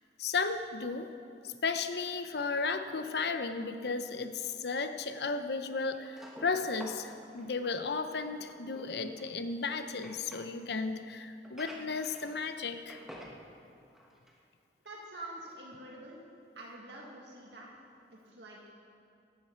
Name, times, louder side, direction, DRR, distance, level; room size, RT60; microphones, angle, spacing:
voice 1, 0.2-1.1 1.4-13.0, left 4 dB, 70° left, 9 dB, 0.8 m, -34 dB
sound 1, 4.5-4.6 5.8-10.5 11.4-12.6 12.9-13.4 13.8-14.4 14.8-14.9 15.5-15.6, equal, ahead, 1.4 m, -51 dB
voice 2, 14.8-16.2 16.6-17.8 18.1-18.7, right 2 dB, 85° right, -2 dB, 1.9 m, -47 dB
16.0 x 11.5 x 4.5 m, 2.5 s
head